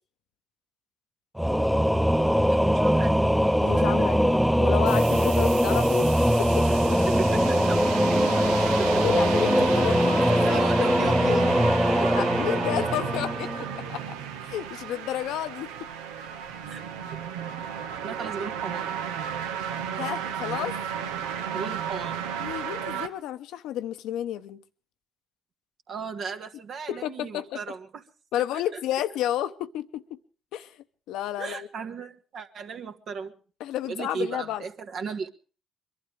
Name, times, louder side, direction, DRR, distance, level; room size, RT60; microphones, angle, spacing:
Singing / Musical instrument, 1.4-13.9, equal, ahead, 0.8 m, -22 dB
voice 1, 2.2-3.4 3.7-4.1 7.1-8.9 10.4-11.5 12.0-13.1 16.7-16.8 18.0-18.9 21.5-22.2 25.9-28.0 28.7-28.8 31.4-33.3 33.8-35.3, right 5 dB, 65° right, 1.7 m, -36 dB
voice 2, 3.6-6.1 6.4-7.0 8.5-11.6 12.1-13.5 13.9-14.0 14.4-15.7 20.0-20.8 22.4-24.6 26.9-27.6 28.3-30.2 30.5-30.7 31.1-31.7 33.6-34.6, left 12 dB, 80° left, 0.8 m, -31 dB
sound 1, 4.9-23.1, right 8 dB, 90° right, 0.8 m, -33 dB
23.0 x 12.0 x 5.0 m
hypercardioid pair, 50°, 0 cm